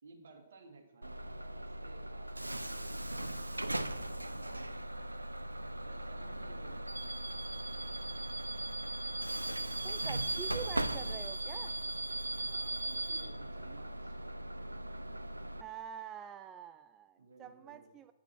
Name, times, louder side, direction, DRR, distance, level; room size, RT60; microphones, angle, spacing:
voice 1, 0.0-8.0 12.3-14.2 17.2-17.9, right 3 dB, 65° right, 3 dB, 2.0 m, -58 dB
Bus / Alarm, 1.0-15.6, right 1 dB, 90° right, 0.5 m, -38 dB
voice 2, 9.8-11.8 15.6-18.1, right 9 dB, 20° right, 10 dB, 0.3 m, -46 dB
8.7 x 5.9 x 7.4 m, 1.1 s
figure-of-eight pair, 120°, 0 cm